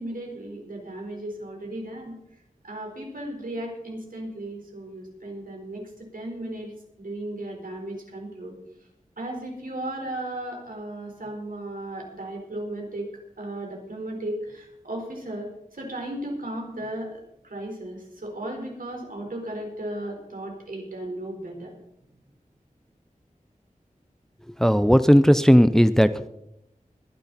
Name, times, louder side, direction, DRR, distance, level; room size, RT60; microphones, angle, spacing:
voice 1, 0.0-2.1 2.6-5.8 6.1-6.7 7.0-8.5 9.2-13.1 13.4-15.5 15.8-21.8, right 1 dB, 85° right, 1 dB, 4.2 m, -35 dB
voice 2, 24.6-26.3, equal, 5° left, 13 dB, 0.6 m, -16 dB
21.5 x 10.0 x 4.2 m, 0.81 s
wide cardioid pair, 70°, 14 cm